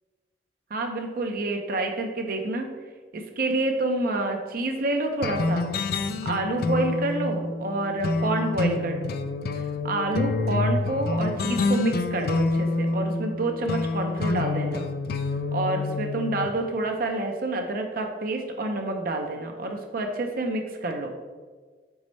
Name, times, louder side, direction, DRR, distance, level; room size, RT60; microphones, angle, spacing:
voice 1, 0.7-2.7 3.1-5.7 6.2-9.2 9.6-14.9 15.5-21.1, right 2 dB, 55° right, 3 dB, 0.6 m, -28 dB
sound 1, 5.2-16.5, left 3 dB, 60° left, 0.4 m, -27 dB
5.2 x 4.7 x 4.2 m, 1.5 s
head